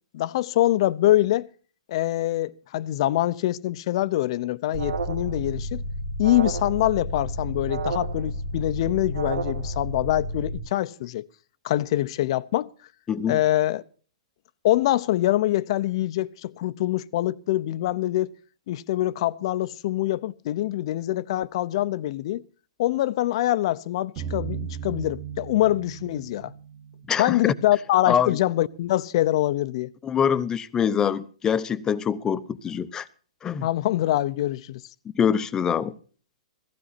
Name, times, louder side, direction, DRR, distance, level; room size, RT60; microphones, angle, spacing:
voice 1, 0.1-1.5 1.9-5.8 6.2-11.3 11.6-12.7 13.3-13.8 14.6-18.3 18.7-22.4 22.8-26.5 27.2-29.9 33.6-34.8, left 14 dB, 50° left, 0.8 m, -24 dB
Alarm, 4.7-10.6, right 1 dB, 85° right, 2.3 m, -30 dB
voice 2, 13.1-13.4 27.1-27.4 28.1-28.4 30.0-33.1 33.4-33.7 35.1-35.9, left 8 dB, 15° left, 0.9 m, -24 dB
sound 1, 24.2-27.3, right 8 dB, 30° right, 1.9 m, -36 dB
16.5 x 15.0 x 4.2 m
hypercardioid pair, 145°, 4 cm